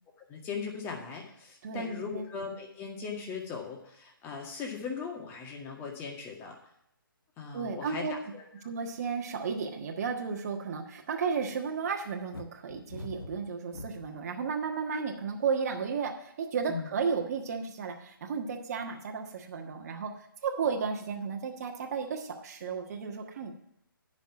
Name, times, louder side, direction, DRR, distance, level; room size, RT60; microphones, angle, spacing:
voice 1, 0.3-6.6 7.4-8.0 8.3-8.4 16.7-16.9, left 5 dB, 15° left, 1 dB, 1.9 m, -38 dB
voice 2, 1.6-2.3 7.5-8.1 8.6-23.5, right 5 dB, 40° right, 2 dB, 1.4 m, -33 dB
sound 1, 12.3-14.3 14.9-15.4, left 2 dB, 90° left, 0.9 m, -43 dB
10.5 x 6.1 x 5.9 m, 0.76 s
figure-of-eight pair, 140°, 12 cm